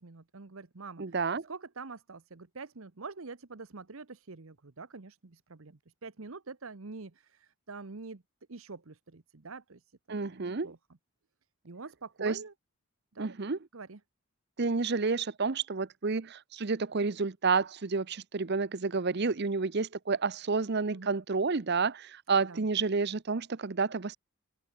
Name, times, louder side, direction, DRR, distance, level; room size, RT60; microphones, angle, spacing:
voice 1, 0.0-1.2 1.5-8.2 8.5-10.8 11.6-12.5 13.1-13.3 13.7-14.0 20.9-21.1 22.4-22.7, right 4 dB, 70° right, 1.0 m, -46 dB
voice 2, 1.0-1.5 10.1-10.7 12.2-12.4 13.2-13.6 14.6-24.2, right 4 dB, 50° right, 0.7 m, -30 dB
head